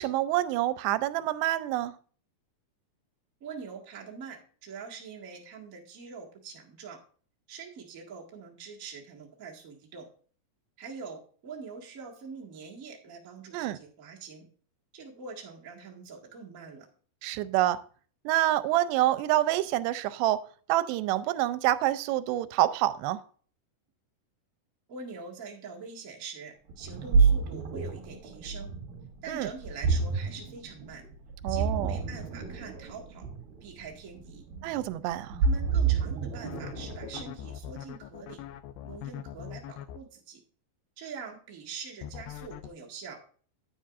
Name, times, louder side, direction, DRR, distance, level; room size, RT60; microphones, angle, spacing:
voice 1, 0.0-1.9 13.5-13.8 17.2-17.8 18.3-20.4 20.7-23.2 29.3-29.5 31.4-32.0 34.6-35.4, right 14 dB, 90° right, 2.7 m, -27 dB
voice 2, 3.4-7.0 7.5-10.1 10.8-14.5 14.9-16.9 24.9-28.7 29.2-31.0 31.5-33.3 33.6-34.4 35.4-38.4 38.8-40.4 41.0-43.2, right 5 dB, 40° right, 1.1 m, -44 dB
Ocean, 26.7-37.5, right 5 dB, 65° right, 4.0 m, -29 dB
sound 1, 36.4-40.0 42.0-42.7, left 10 dB, 80° left, 2.4 m, -41 dB
10.0 x 9.5 x 2.5 m
omnidirectional pair, 4.8 m